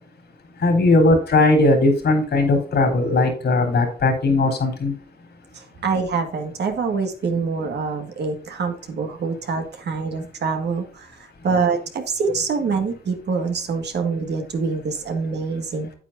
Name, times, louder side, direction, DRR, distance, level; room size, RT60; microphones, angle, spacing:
voice 1, 0.6-4.9, left 2 dB, 75° left, 4 dB, 3.6 m, -18 dB
voice 2, 5.5-15.9, right 5 dB, 80° right, 5 dB, 1.8 m, -25 dB
8.9 x 8.9 x 2.6 m, 0.42 s
cardioid pair, 95°, 17 cm